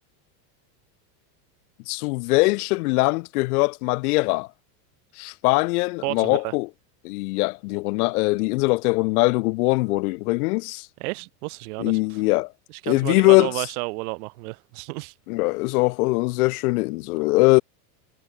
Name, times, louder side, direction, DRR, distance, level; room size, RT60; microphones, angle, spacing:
voice 1, 1.9-4.5 5.2-6.7 7.0-10.9 11.8-12.5 12.9-13.6 15.3-17.6, left 24 dB, 65° left, 0.6 m, -21 dB
voice 2, 6.0-6.6 11.0-12.2 12.8-15.1, right 25 dB, 60° right, 2.4 m, -31 dB
supercardioid pair, 155°, 48 cm